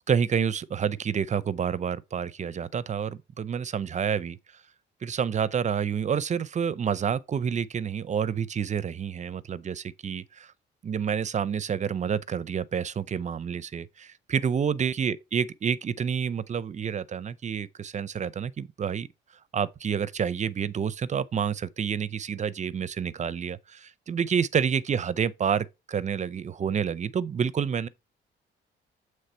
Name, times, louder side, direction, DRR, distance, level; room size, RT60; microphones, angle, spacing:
voice 1, 0.1-4.4 5.0-10.5 10.8-19.1 19.5-27.9, right 7 dB, 35° right, 0.5 m, -28 dB
7.9 x 3.2 x 4.3 m
cardioid pair, 90°, 20 cm